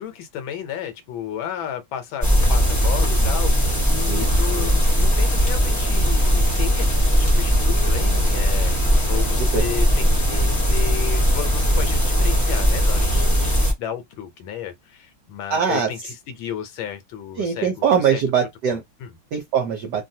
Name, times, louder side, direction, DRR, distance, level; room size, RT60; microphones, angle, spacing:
voice 1, 0.0-18.2 18.7-19.2, left 9 dB, 75° left, 1.4 m, -33 dB
sound 1, 2.2-13.7, equal, 15° left, 0.7 m, -19 dB
voice 2, 15.5-15.9 17.4-18.8 19.3-20.0, right 7 dB, 65° right, 1.2 m, -21 dB
3.3 x 2.3 x 2.7 m
omnidirectional pair, 2.3 m